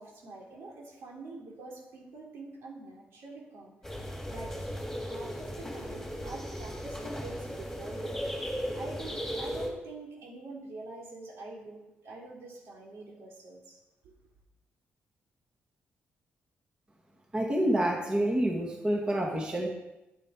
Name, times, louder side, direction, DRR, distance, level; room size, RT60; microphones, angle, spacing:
voice 1, 0.0-4.0 4.3-4.5 5.0-13.8 14.0-14.1, right 2 dB, 80° right, -3 dB, 3.6 m, -46 dB
sound 1, 3.8-9.7, equal, 5° left, 2.7 m, -36 dB
voice 2, 17.3-19.7, right 1 dB, 25° right, -1 dB, 2.0 m, -28 dB
12.5 x 9.2 x 4.9 m, 0.96 s
cardioid pair, 145°, 4 cm